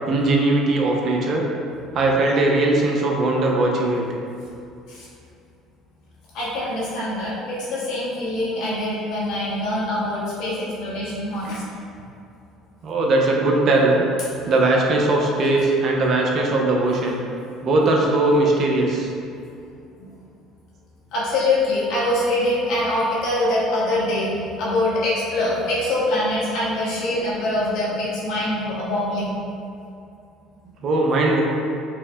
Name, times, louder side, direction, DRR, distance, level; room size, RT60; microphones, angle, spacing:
voice 1, 0.1-1.4 1.9-4.0 12.8-14.0 14.5-17.2 17.6-19.1 27.0-27.1 30.8-31.4, right 2 dB, 55° right, -1 dB, 0.6 m, -19 dB
voice 2, 6.3-11.6 20.0-20.1 21.1-29.4, left 1 dB, 70° left, -7 dB, 1.2 m, -24 dB
4.6 x 2.1 x 3.3 m, 2.6 s
supercardioid pair, 85°, 0 cm